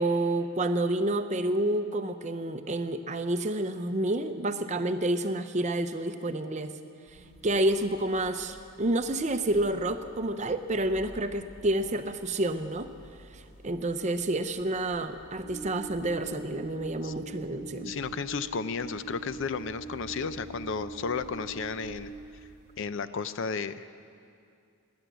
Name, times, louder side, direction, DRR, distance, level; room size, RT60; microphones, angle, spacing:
voice 1, 0.0-6.7 7.1-12.9 13.2-17.9, right 1 dB, 30° right, 9 dB, 0.6 m, -29 dB
sound 1, 7.1-22.8, equal, 90° left, 3.6 m, -54 dB
sound 2, 15.4-22.2, right 3 dB, 85° right, 1.0 m, -43 dB
voice 2, 17.8-22.1 22.8-23.9, left 5 dB, 55° left, 13 dB, 0.5 m, -33 dB
16.0 x 10.5 x 8.1 m, 2.4 s
head